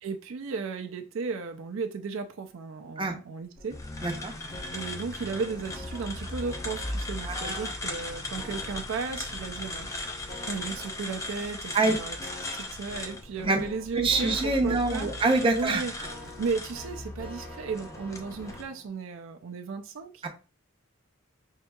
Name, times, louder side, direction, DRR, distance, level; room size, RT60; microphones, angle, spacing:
voice 1, 0.0-3.8 4.7-10.1 10.5-12.2 12.5-15.1 15.5-15.9 16.4-20.3, right 4 dB, 70° right, 0.4 m, -35 dB
sound 1, 3.5-18.9, left 1 dB, 45° left, 0.9 m, -48 dB
sound 2, 3.7-18.6, left 2 dB, 15° left, 0.4 m, -38 dB
voice 2, 4.0-4.3 7.2-7.7 11.7-12.0 13.4-13.6 14.0-15.8 20.2-20.3, right 3 dB, 25° right, 0.6 m, -25 dB
5.3 x 2.7 x 2.2 m
head